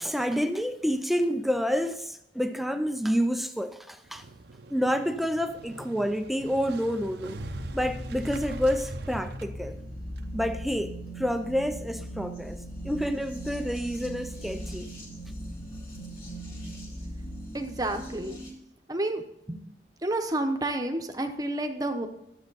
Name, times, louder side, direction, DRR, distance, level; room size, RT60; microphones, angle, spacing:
voice 1, 0.0-4.2 4.7-7.4 7.7-9.8 10.3-14.9, equal, ahead, 0.4 m, -28 dB
Motorcycle, 4.1-10.8, right 3 dB, 65° right, 0.7 m, -44 dB
sound 1, 7.4-18.5, equal, 30° left, 2.5 m, -39 dB
voice 2, 17.5-18.4 18.9-19.6 20.0-22.1, right 1 dB, 20° right, 0.9 m, -30 dB
13.0 x 7.6 x 4.0 m
head